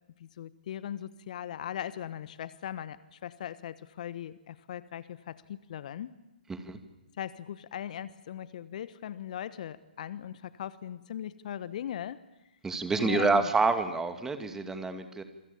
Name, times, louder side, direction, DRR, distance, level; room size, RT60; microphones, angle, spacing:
voice 1, 0.2-6.1 7.2-12.2 12.9-13.5, left 10 dB, 50° left, 16 dB, 1.2 m, -39 dB
voice 2, 12.6-15.2, right 3 dB, 10° right, 8 dB, 2.4 m, -28 dB
27.5 x 24.5 x 7.3 m, 0.97 s
figure-of-eight pair, 125°, 5 cm